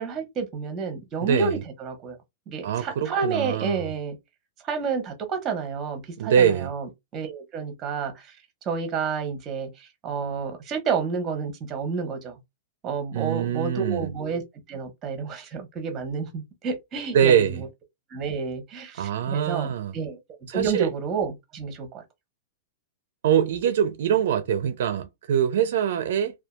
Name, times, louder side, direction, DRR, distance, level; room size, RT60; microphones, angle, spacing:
voice 1, 0.0-2.2 2.5-4.2 4.7-8.3 8.7-12.4 12.8-14.4 14.7-17.4 18.1-20.2 20.5-22.0, right 5 dB, 25° right, 0.9 m, -30 dB
voice 2, 1.2-1.6 2.6-3.9 6.2-6.7 13.1-14.1 17.1-17.6 18.9-19.9 20.5-20.9 23.2-26.3, right 8 dB, 70° right, 0.5 m, -23 dB
2.7 x 2.3 x 2.3 m
hypercardioid pair, 150°, 0 cm